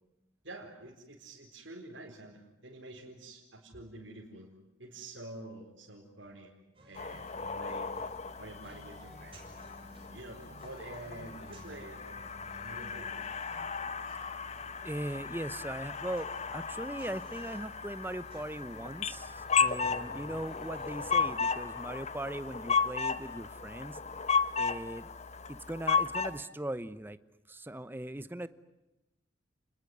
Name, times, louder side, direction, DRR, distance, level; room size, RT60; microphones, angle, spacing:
voice 1, 0.4-4.5 4.8-6.5 6.9-7.9 8.4-9.4 10.1-13.2, right 2 dB, 65° right, -2 dB, 4.5 m, -48 dB
sound 1, 6.7-21.3, right 1 dB, 30° right, 7.6 m, -55 dB
sound 2, 7.0-26.4, left 5 dB, 35° left, 1.1 m, -35 dB
voice 2, 14.8-24.0 24.5-25.1 25.5-27.2 27.5-28.5, right 1 dB, 10° right, 14 dB, 0.9 m, -39 dB
30.0 x 21.0 x 9.5 m, 0.98 s
head